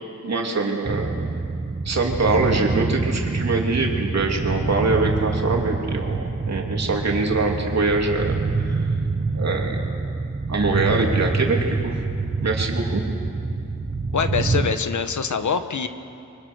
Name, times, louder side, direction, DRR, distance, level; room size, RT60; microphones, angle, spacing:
voice 1, 0.2-1.1 1.8-8.9 9.3-9.8 10.5-11.9 12.4-13.0, right 3 dB, 55° right, 0 dB, 3.2 m, -23 dB
sound 1, 0.8-14.7, right 3 dB, 30° right, 1.1 m, -26 dB
voice 2, 14.1-15.9, left 6 dB, 70° left, 9 dB, 1.3 m, -24 dB
29.5 x 24.5 x 6.5 m, 2.5 s
wide cardioid pair, 140°, 31 cm